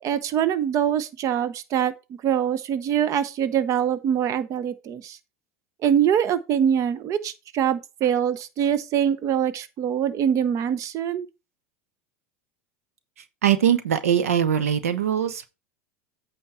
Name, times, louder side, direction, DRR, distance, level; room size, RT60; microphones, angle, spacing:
voice 1, 0.0-1.9 2.2-5.2 5.8-11.3, right 9 dB, 45° right, 1.0 m, -24 dB
voice 2, 13.4-15.5, right 9 dB, 85° right, 0.9 m, -21 dB
8.7 x 5.2 x 4.4 m
hypercardioid pair, 90°, 8 cm